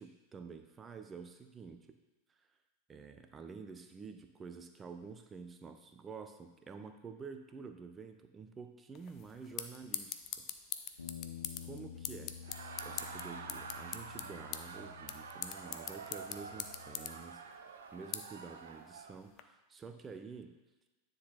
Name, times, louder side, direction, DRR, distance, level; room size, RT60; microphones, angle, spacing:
voice 1, 0.0-2.0 2.4-2.5 2.9-10.4 11.6-20.5, right 5 dB, 20° right, 7 dB, 0.6 m, -49 dB
sound 1, 8.9-19.4, left 10 dB, 35° left, 0.4 m, -45 dB
sound 2, 11.0-17.2, left 9 dB, 75° left, 0.8 m, -51 dB
Laughter, 12.3-19.2, right 5 dB, 65° right, 0.6 m, -48 dB
9.6 x 3.9 x 4.2 m, 1.1 s
figure-of-eight pair, 90°, 0 cm